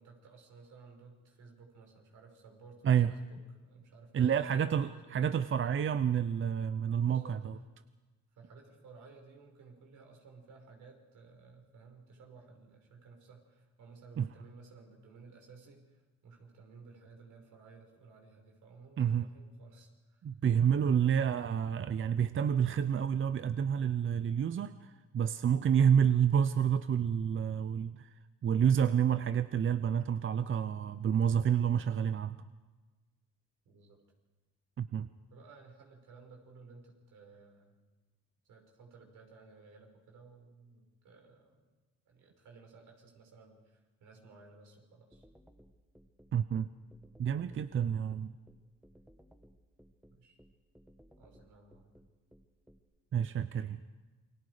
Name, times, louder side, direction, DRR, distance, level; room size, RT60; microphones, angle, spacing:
voice 1, 0.0-3.2 3.6-5.2 7.0-7.4 8.4-20.3 20.8-21.0 33.7-34.0 35.3-37.7 38.5-41.7 42.1-45.3 50.1-50.4 51.2-51.9, right 4 dB, 75° right, 2 dB, 5.8 m, -56 dB
voice 2, 4.1-7.5 14.2-14.3 19.0-19.3 20.2-28.1 28.4-32.4 34.8-35.1 46.3-46.7 47.2-48.3 53.1-53.8, right 8 dB, 45° right, 12 dB, 0.7 m, -29 dB
sound 1, 45.1-52.8, equal, 5° right, 1.6 m, -60 dB
29.0 x 22.5 x 5.1 m, 1.2 s
cardioid pair, 90°, 30 cm